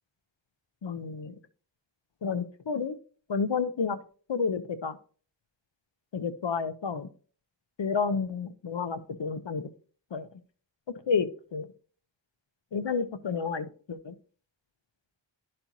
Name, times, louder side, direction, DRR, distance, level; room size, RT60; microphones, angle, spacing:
voice 1, 0.8-1.4 2.2-3.0 3.3-4.0 4.3-5.0 6.1-7.1 7.8-9.7 10.1-10.3 11.1-11.7 12.7-14.1, left 5 dB, 70° left, 11 dB, 0.7 m, -30 dB
12.5 x 4.3 x 2.7 m, 0.41 s
wide cardioid pair, 45°, 46 cm